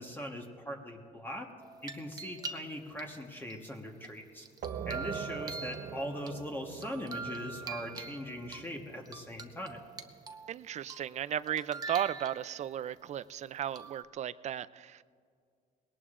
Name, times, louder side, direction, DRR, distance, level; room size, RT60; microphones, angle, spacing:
voice 1, 0.0-1.5 1.8-4.4 4.9-9.8, equal, 10° left, 1 dB, 1.2 m, -41 dB
sound 1, 1.6-3.0 3.5-6.3 6.8-8.6 9.1-10.5 10.9-11.2 11.5-12.8 13.8-14.0, right 3 dB, 20° right, 0.9 m, -44 dB
sound 2, 4.6-10.0, right 7 dB, 60° right, 0.8 m, -43 dB
voice 2, 10.5-15.0, right 10 dB, 45° right, 17 dB, 0.4 m, -35 dB
20.5 x 18.0 x 2.5 m, 2.2 s
cardioid pair, 110°, 17 cm